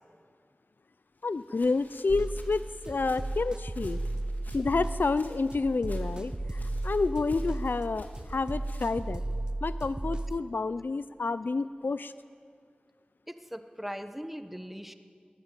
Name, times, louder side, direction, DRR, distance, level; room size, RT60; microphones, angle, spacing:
voice 1, 1.2-4.0 4.5-9.2 9.6-12.1, left 3 dB, 85° left, 14 dB, 0.4 m, -29 dB
Walk footsteps, 1.2-9.2, left 1 dB, 65° left, 2.8 m, -50 dB
sound 1, 2.1-10.4, right 2 dB, 25° right, 0.8 m, -35 dB
voice 2, 13.3-14.9, equal, 5° right, 8 dB, 1.2 m, -40 dB
21.0 x 16.5 x 9.2 m, 2.2 s
wide cardioid pair, 60°, 3 cm